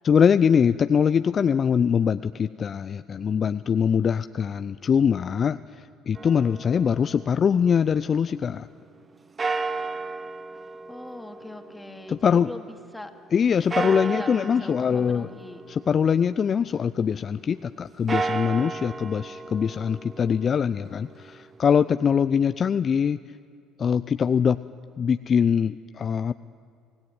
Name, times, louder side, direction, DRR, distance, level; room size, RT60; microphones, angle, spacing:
voice 1, 0.0-8.7 12.1-12.5 13.3-15.3 15.7-23.2 23.8-24.6 25.0-26.3, left 7 dB, 40° left, 12 dB, 0.5 m, -23 dB
sound 1, 6.2-8.2 9.4-12.8 13.7-16.7 17.9-21.9, right 3 dB, 30° right, 0.8 m, -34 dB
voice 2, 10.9-13.1 13.7-15.6, left 2 dB, 10° left, 5 dB, 2.3 m, -41 dB
24.5 x 17.5 x 9.6 m, 2.3 s
hypercardioid pair, 60°, 0 cm